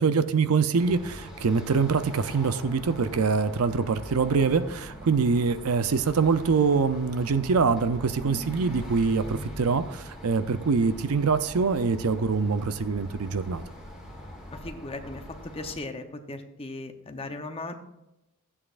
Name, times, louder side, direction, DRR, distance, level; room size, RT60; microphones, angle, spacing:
voice 1, 0.0-13.6, right 5 dB, 70° right, 12 dB, 0.5 m, -24 dB
sound 1, 0.7-15.8, equal, 5° right, 2.0 m, -42 dB
voice 2, 14.5-17.7, left 2 dB, 25° left, 6 dB, 0.8 m, -37 dB
13.5 x 8.5 x 2.5 m, 0.91 s
head